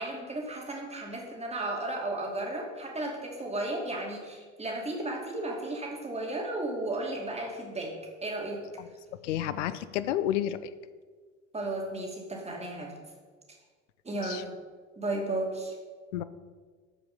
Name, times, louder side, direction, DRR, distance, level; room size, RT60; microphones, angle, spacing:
voice 1, 0.0-7.9 8.2-8.6 11.5-12.9 14.0-14.5 15.0-15.8, right 2 dB, 15° right, 0 dB, 2.5 m, -34 dB
voice 2, 9.2-10.6 14.2-14.4 16.1-16.2, left 12 dB, 70° left, 14 dB, 0.7 m, -30 dB
14.0 x 5.1 x 5.5 m, 1.5 s
figure-of-eight pair, 65°, 38 cm